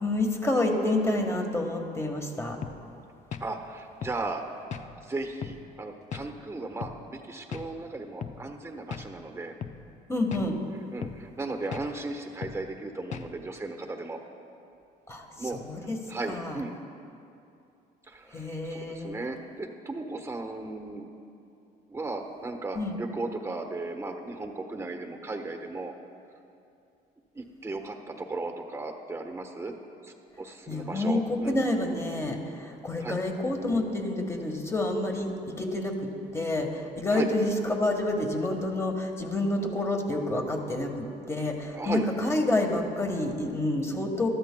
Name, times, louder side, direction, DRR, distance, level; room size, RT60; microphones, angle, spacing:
voice 1, 0.0-2.6 10.1-10.6 15.1-15.2 15.6-16.0 16.3-16.6 18.3-19.1 22.7-22.9 30.7-35.9 36.3-44.3, left 2 dB, 15° left, 3 dB, 1.5 m, -28 dB
sound 1, 2.6-2.8 3.3-3.5 4.0-4.2 4.7-4.9 5.4-5.6 6.1-6.3 6.8-7.0 7.5-7.7 8.2-8.4 8.9-9.1 9.6-9.8 10.3-10.5 11.0-11.2 11.7-11.9 12.4-12.6 13.1-13.3, left 7 dB, 45° left, 0.6 m, -37 dB
voice 2, 3.4-4.5 5.0-9.5 10.9-14.2 15.4-16.7 18.1-21.1 21.9-25.9 27.3-29.7 30.0-31.6 33.0-33.2 37.1-37.3 41.7-42.1, right 2 dB, 15° right, 4 dB, 1.1 m, -36 dB
22.0 x 13.0 x 2.3 m, 2.6 s
cardioid pair, 110°, 17 cm